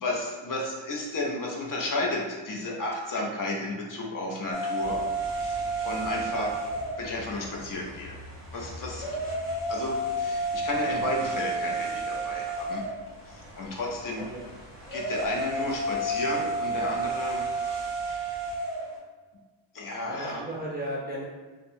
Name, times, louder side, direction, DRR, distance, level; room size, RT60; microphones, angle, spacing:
voice 1, 0.0-6.6 7.0-8.2 8.5-9.1 9.7-12.8 13.3-14.3 14.9-18.4 19.7-20.4, left 2 dB, 45° left, -1 dB, 0.5 m, -33 dB
sound 1, 4.5-19.0, right 2 dB, ahead, 1.0 m, -32 dB
sound 2, 4.8-18.6, left 1 dB, 80° left, 1.1 m, -48 dB
voice 2, 14.0-14.5 20.0-21.2, right 1 dB, 20° right, -6 dB, 0.3 m, -35 dB
2.7 x 2.1 x 2.5 m, 1.4 s
wide cardioid pair, 130°, 49 cm